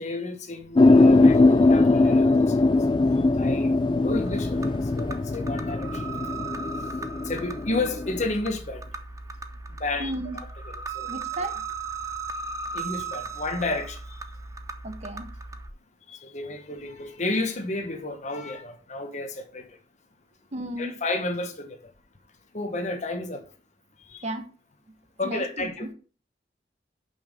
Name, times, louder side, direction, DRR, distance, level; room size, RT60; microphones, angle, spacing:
voice 1, 0.0-2.6 3.4-6.0 7.2-8.9 9.8-11.1 12.7-14.0 16.1-19.7 20.8-21.8 22.5-23.4 24.1-24.2 25.2-25.9, left 2 dB, 40° left, 1.2 m, -31 dB
sound 1, 0.8-8.2, left 2 dB, 25° left, 0.3 m, -20 dB
sound 2, 4.1-15.7, right 4 dB, 20° right, 0.7 m, -37 dB
voice 2, 10.0-10.4 11.1-11.6 14.8-15.3 20.5-21.0 24.2-24.5 25.2-25.9, right 1 dB, 40° right, 1.0 m, -34 dB
5.7 x 5.5 x 6.5 m
head